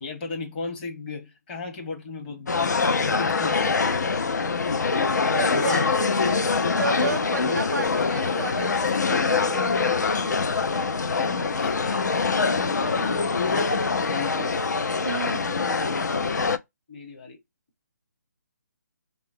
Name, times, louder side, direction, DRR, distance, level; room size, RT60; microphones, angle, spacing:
voice 1, 0.0-3.9 5.5-6.0 7.4-7.6 8.1-8.6 11.1-11.3 11.6-12.3 12.8-14.5 16.9-17.4, left 3 dB, 30° left, 1.2 m, -36 dB
sound 1, 2.5-16.6, left 4 dB, 75° left, 0.4 m, -24 dB
voice 2, 5.3-9.9 13.0-13.1 15.0-15.6, right 3 dB, 85° right, 0.5 m, -33 dB
2.9 x 2.1 x 2.6 m
figure-of-eight pair, 145°, 9 cm